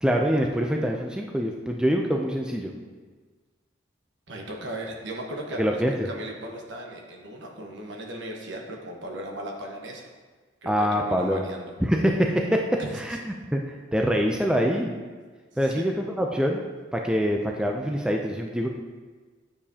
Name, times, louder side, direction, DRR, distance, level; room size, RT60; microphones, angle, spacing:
voice 1, 0.0-2.7 5.6-6.1 10.7-11.4 11.8-15.0 15.6-16.6 16.9-18.7, equal, 5° right, 1 dB, 0.4 m, -25 dB
voice 2, 4.3-10.0 10.6-11.7 12.8-13.2 15.6-15.8, right 1 dB, 70° right, 0 dB, 1.2 m, -37 dB
9.9 x 6.8 x 2.8 m, 1.4 s
head